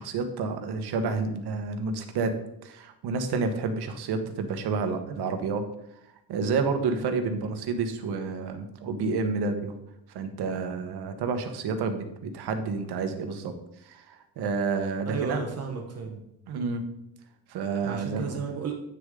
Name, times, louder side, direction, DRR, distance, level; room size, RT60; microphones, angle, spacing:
voice 1, 0.0-5.7 6.3-9.8 10.1-13.5 13.8-15.4 16.5-16.9 17.5-18.4, right 4 dB, 65° right, 7 dB, 1.2 m, -29 dB
voice 2, 15.0-16.3 17.8-18.7, right 5 dB, 35° right, 1 dB, 1.1 m, -33 dB
9.2 x 6.5 x 3.8 m, 0.83 s
cardioid pair, 175°, 43 cm